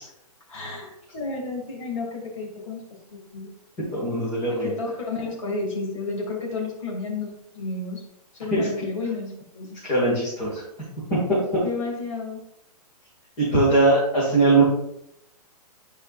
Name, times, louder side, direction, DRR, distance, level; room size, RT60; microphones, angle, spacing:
voice 1, 0.5-3.5 4.5-8.0 8.3-9.8 11.6-12.4, left 3 dB, 55° left, -1 dB, 2.6 m, -32 dB
voice 2, 3.9-4.7 8.5-8.7 9.8-10.6 11.1-11.6 13.4-14.6, right 2 dB, 20° left, -9 dB, 2.2 m, -20 dB
10.5 x 5.0 x 2.6 m, 0.77 s
hypercardioid pair, 180°, 20 cm